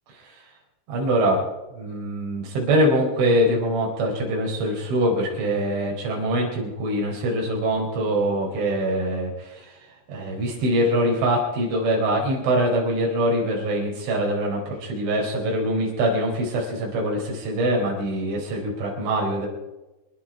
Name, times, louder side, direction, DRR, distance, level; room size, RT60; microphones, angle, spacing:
voice 1, 0.9-1.4 1.7-9.7 10.1-19.5, right 1 dB, 65° right, -2 dB, 6.4 m, -23 dB
27.0 x 10.5 x 4.9 m, 1.1 s
omnidirectional pair, 6.0 m